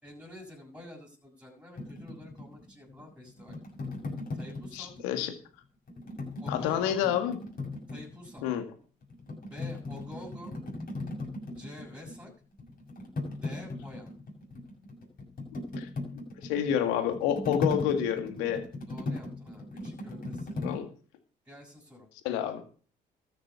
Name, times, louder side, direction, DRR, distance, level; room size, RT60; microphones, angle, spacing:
voice 1, 0.0-3.5 4.3-4.9 6.4-7.0 7.9-8.5 9.5-10.5 11.5-12.3 13.4-14.1 18.9-20.6 21.4-22.1, left 1 dB, 5° right, -2 dB, 6.4 m, -48 dB
sound 1, 1.8-5.2 5.9-8.6 9.0-12.3 12.5-20.8, left 2 dB, 45° left, 6.4 m, -38 dB
voice 2, 4.7-5.3 6.5-7.4 8.4-8.6 15.5-15.9 16.4-18.6 20.6-20.9 22.2-22.6, left 9 dB, 90° left, 8 dB, 1.9 m, -29 dB
13.5 x 7.4 x 6.9 m, 0.40 s
supercardioid pair, 60°, 20 cm